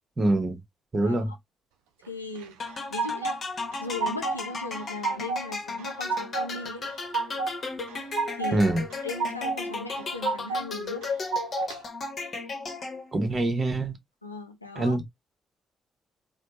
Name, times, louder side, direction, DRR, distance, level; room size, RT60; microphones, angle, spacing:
voice 1, 0.2-0.6 0.9-1.3 8.5-8.8 13.1-13.9 14.8-15.0, right 2 dB, 35° right, 0.9 m, -24 dB
voice 2, 1.0-1.4 2.0-2.6 2.9-3.4 3.8-6.8 8.3-8.7 9.0-11.1 14.2-15.0, left 2 dB, 90° left, 0.4 m, -37 dB
sound 1, 2.4-3.4 3.7-4.4 4.7-5.4 5.8-6.5 6.8-7.5 7.9-8.6 8.9-9.6 9.9-10.6 11.0-11.8, right 4 dB, 70° right, 0.4 m, -30 dB
sound 2, 2.6-13.3, left 3 dB, 45° left, 0.9 m, -35 dB
3.2 x 2.0 x 2.9 m
figure-of-eight pair, 40°, 0 cm